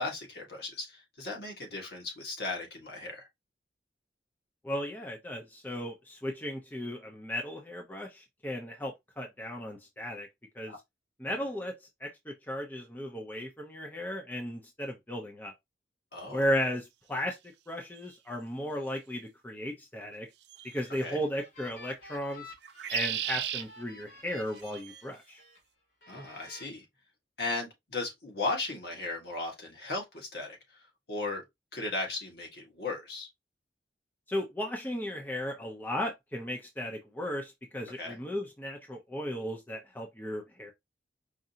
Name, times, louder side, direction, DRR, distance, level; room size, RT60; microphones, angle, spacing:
voice 1, 0.0-3.3 10.7-10.8 16.1-16.4 21.0-21.2 26.1-26.8 27.4-30.6 31.1-31.4 31.7-33.3 38.0-38.2, left 3 dB, 60° left, 1.5 m, -36 dB
voice 2, 4.6-10.3 10.5-10.7 11.2-11.8 12.0-15.5 16.3-20.3 20.6-22.5 22.9-25.4 34.3-40.7, equal, 10° left, 0.6 m, -35 dB
sound 1, 18.0-18.1 20.5-20.9 22.6-23.6 24.6-25.0, right 10 dB, 70° right, 0.4 m, -35 dB
sound 2, 20.5-25.6 26.0-26.6, left 2 dB, 80° left, 2.5 m, -52 dB
4.9 x 2.6 x 2.7 m
head